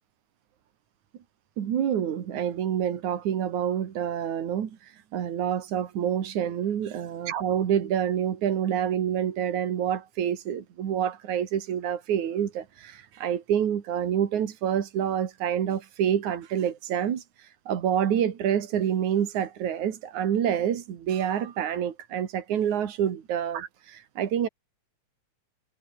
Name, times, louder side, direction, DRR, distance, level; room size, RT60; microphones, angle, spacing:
voice 1, 1.6-24.5, right 9 dB, 85° right, 3.4 m, -27 dB
omnidirectional pair, 3.3 m